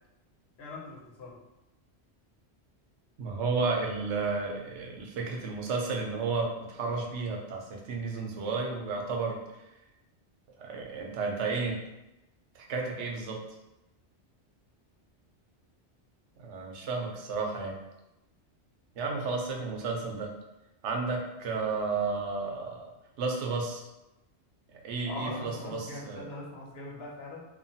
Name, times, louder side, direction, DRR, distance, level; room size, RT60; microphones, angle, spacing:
voice 1, 0.6-1.4 25.1-27.4, left 2 dB, 65° left, -3 dB, 0.9 m, -41 dB
voice 2, 3.2-9.4 10.6-11.8 12.5-13.4 16.4-17.8 19.0-20.3 20.8-22.9 23.2-23.8 24.8-26.2, right 4 dB, 85° right, 0 dB, 0.9 m, -32 dB
3.0 x 2.1 x 2.6 m, 0.96 s
omnidirectional pair, 1.2 m